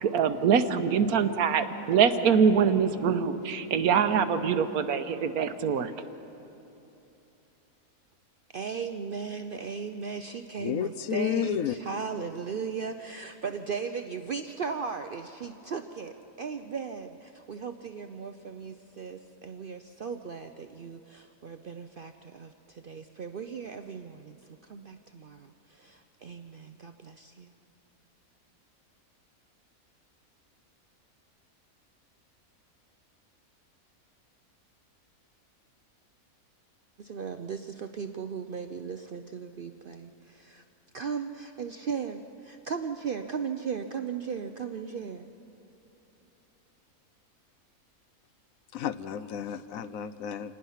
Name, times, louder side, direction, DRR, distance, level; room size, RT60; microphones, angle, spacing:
voice 1, 0.0-5.9, right 6 dB, 80° right, 10 dB, 1.3 m, -24 dB
voice 2, 8.5-27.5 37.0-40.6 40.9-45.3, right 6 dB, 60° right, 7 dB, 0.6 m, -37 dB
voice 3, 10.6-11.8 48.7-50.5, left 9 dB, 70° left, 13 dB, 1.0 m, -31 dB
27.0 x 19.0 x 5.7 m, 2.9 s
omnidirectional pair, 1.5 m